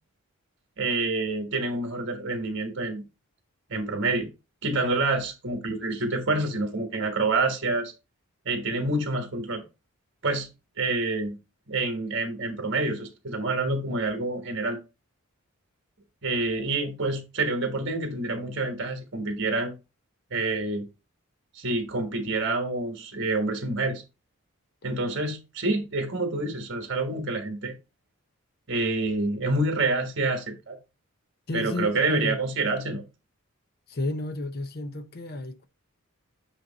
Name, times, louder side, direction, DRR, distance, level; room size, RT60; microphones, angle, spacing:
voice 1, 0.8-3.0 3.7-4.3 4.6-7.9 8.4-9.6 10.2-10.5 10.8-11.4 11.7-14.8 16.2-19.7 20.3-20.9 21.5-24.0 24.8-27.7 28.7-30.8 31.5-33.0, right 2 dB, 55° right, 1.3 m, -27 dB
voice 2, 31.5-32.4 33.9-35.7, left 2 dB, 45° left, 0.7 m, -32 dB
7.8 x 3.0 x 4.0 m
head